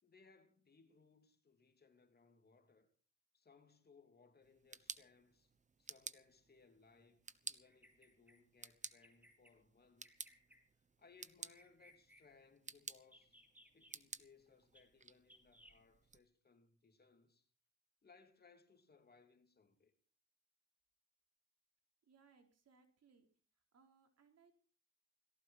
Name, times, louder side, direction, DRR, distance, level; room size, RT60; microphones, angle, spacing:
voice 1, 0.0-2.9 3.3-5.5 5.8-10.2 11.0-13.4 13.7-17.5 18.0-19.9, left 4 dB, 30° left, 2.9 m, -67 dB
sound 1, 4.4-16.2, right 4 dB, 25° right, 1.0 m, -54 dB
Bird vocalization bird call bird song, 7.6-8.4 8.8-9.5 10.0-10.6 11.3-12.2 13.0-14.0 14.7-14.8 15.3-15.8, equal, 5° right, 4.0 m, -65 dB
voice 2, 22.1-23.3 23.7-24.6, right 5 dB, 55° right, 4.1 m, -69 dB
18.5 x 16.5 x 4.4 m
cardioid pair, 90°, 30 cm